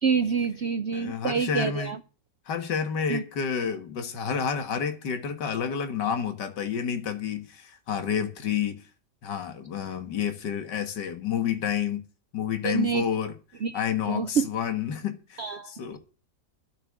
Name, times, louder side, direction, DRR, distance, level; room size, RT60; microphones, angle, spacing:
voice 1, 0.0-2.0 3.1-3.2 12.6-13.0 13.6-13.8 14.1-14.5 15.4-15.7, right 6 dB, 60° right, 0.7 m, -27 dB
voice 2, 0.9-1.9 2.5-8.9 9.2-12.0 12.3-13.3 13.7-16.0, left 7 dB, 75° left, 2.2 m, -29 dB
12.5 x 6.8 x 7.8 m
omnidirectional pair, 1.9 m